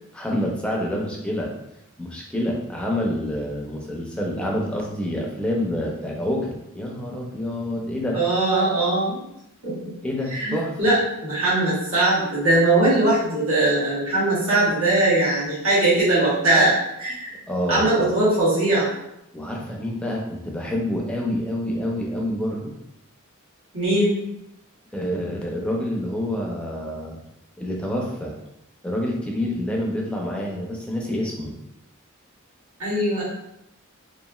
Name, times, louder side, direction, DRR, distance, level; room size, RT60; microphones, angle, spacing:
voice 1, 0.1-1.5 2.0-8.2 10.0-10.8 17.5-18.1 19.3-22.7 24.9-27.2 27.6-28.3 28.8-31.6, left 1 dB, 5° left, -2 dB, 0.5 m, -27 dB
voice 2, 8.1-9.2 9.6-9.9 10.3-11.0 11.2-17.3 17.7-18.9 23.7-24.2 32.8-33.2, right 2 dB, 85° right, -9 dB, 1.4 m, -20 dB
3.0 x 2.5 x 2.3 m, 0.82 s
head